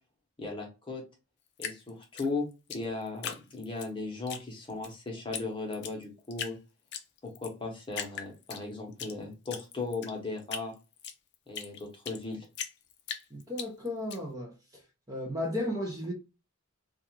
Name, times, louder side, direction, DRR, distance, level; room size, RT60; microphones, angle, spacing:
voice 1, 0.4-1.0 1.6-6.6 7.2-10.7 11.5-12.4, left 3 dB, 25° left, 0.8 m, -37 dB
Drip, 1.6-3.9 4.3-4.9 5.3-5.4 5.7-6.6 6.9-7.5 7.9-9.1 9.5-12.2 12.6-14.2, left 8 dB, 50° left, 0.4 m, -39 dB
voice 2, 13.3-14.8 15.1-16.1, left 1 dB, 15° right, 0.5 m, -34 dB
2.4 x 2.3 x 2.9 m
head